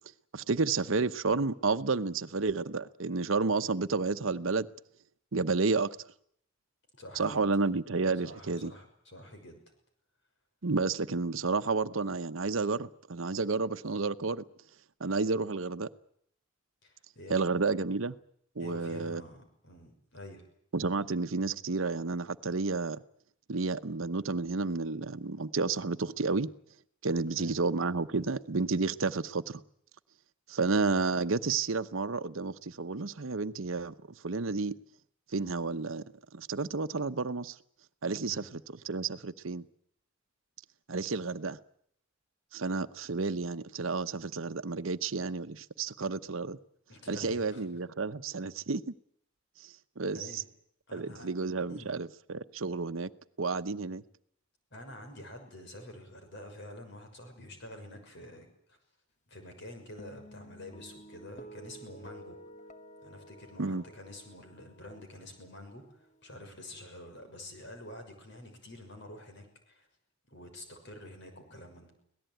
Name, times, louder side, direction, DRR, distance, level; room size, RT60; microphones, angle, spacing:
voice 1, 0.3-4.7 5.3-5.9 7.1-8.7 10.6-14.4 15.0-15.9 17.3-18.2 18.6-19.2 20.7-23.0 23.5-26.5 27.0-29.6 30.5-33.9 34.2-34.7 35.3-36.1 36.3-37.6 38.0-39.6 40.9-41.6 42.5-46.6 47.1-48.9 49.6-50.4 50.9-53.1 53.4-54.0 63.6-63.8, right 4 dB, 80° right, 12 dB, 0.9 m, -31 dB
voice 2, 6.9-7.4 8.2-9.6 16.8-17.4 18.6-20.4 27.3-27.6 38.2-38.4 46.9-47.6 50.1-50.4 50.9-51.3 51.7-51.9 54.7-58.8 59.3-62.4 63.0-69.9 70.3-71.9, left 1 dB, 60° left, 5 dB, 6.3 m, -48 dB
Guitar, 60.0-66.5, right 1 dB, 40° left, 1.2 m, -52 dB
25.5 x 18.0 x 9.2 m, 0.70 s
head